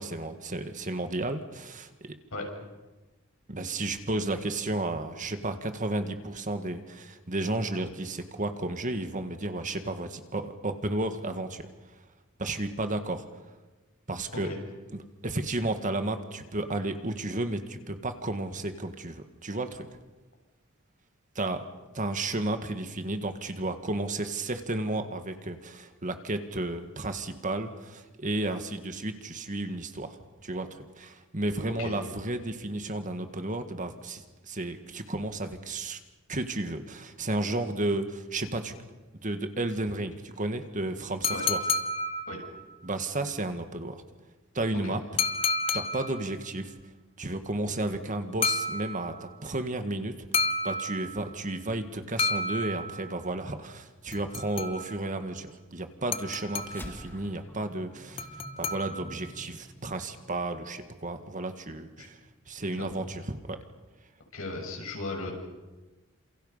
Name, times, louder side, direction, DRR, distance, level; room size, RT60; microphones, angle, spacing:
voice 1, 0.0-2.2 3.5-11.7 12.4-13.3 14.1-14.5 14.9-19.9 21.4-21.7 21.9-36.0 36.3-38.7 39.2-41.6 42.8-44.0 44.5-45.0 45.7-46.7 47.2-50.3 50.6-58.3 58.6-62.2 62.5-63.6, right 2 dB, 40° right, 7 dB, 1.8 m, -33 dB
sound 1, 41.2-42.7 45.2-46.3 48.4-49.3 50.3-51.4 52.2-53.2 54.1-55.1 56.1-57.0 58.2-59.3, left 3 dB, 25° left, 1.2 m, -31 dB
sound 2, 56.7-61.3, equal, 10° left, 2.0 m, -48 dB
voice 2, 64.3-65.3, left 2 dB, 80° left, 1 dB, 7.1 m, -36 dB
28.5 x 27.5 x 5.7 m, 1.2 s
head